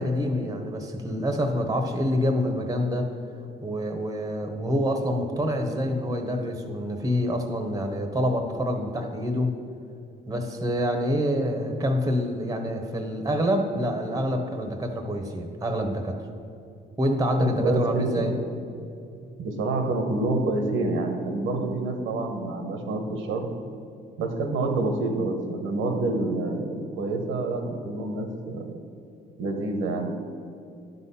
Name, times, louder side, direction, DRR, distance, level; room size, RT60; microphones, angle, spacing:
voice 1, 0.0-3.1 3.6-9.5 10.3-16.2 17.0-18.3, equal, 20° right, 5 dB, 1.0 m, -26 dB
voice 2, 17.4-18.3 19.4-23.5 24.2-28.8 29.4-30.1, right 2 dB, 85° right, 4 dB, 1.1 m, -27 dB
10.5 x 4.1 x 5.6 m, 2.6 s
cardioid pair, 90°, 20 cm